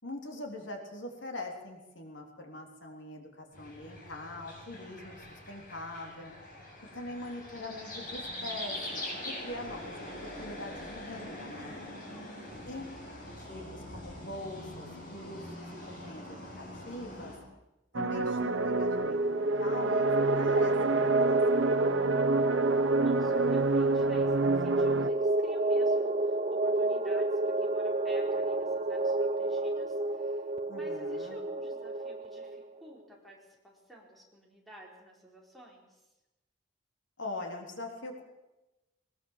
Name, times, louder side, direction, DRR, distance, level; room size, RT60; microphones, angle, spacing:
voice 1, 0.0-6.3 6.9-11.9 12.7-12.8 13.4-17.3 17.9-22.7 30.7-31.4 37.2-38.2, left 2 dB, 65° left, 2 dB, 3.7 m, -43 dB
sound 1, 3.5-17.4, left 1 dB, 45° left, 7.7 m, -43 dB
voice 2, 6.9-7.5 12.0-12.9 23.0-36.1, equal, ahead, -2 dB, 4.8 m, -54 dB
sound 2, 17.9-25.1, right 3 dB, 70° right, 0.9 m, -30 dB
sound 3, 18.3-32.6, right 2 dB, 35° right, 0.8 m, -29 dB
22.5 x 21.0 x 7.4 m, 0.99 s
head